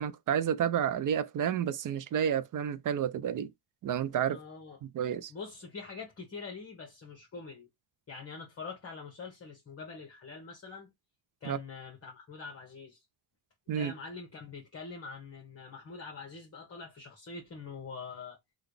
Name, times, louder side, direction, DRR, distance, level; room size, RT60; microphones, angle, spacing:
voice 1, 0.0-3.5 3.8-4.4 4.8-5.3 11.4-11.6 13.7-13.9, right 9 dB, 40° right, 0.5 m, -30 dB
voice 2, 4.3-4.8 5.3-7.7 8.1-10.9 11.4-13.0 13.7-18.4, left 4 dB, 30° left, 1.1 m, -44 dB
3.8 x 2.4 x 3.2 m
cardioid pair, 120°, 49 cm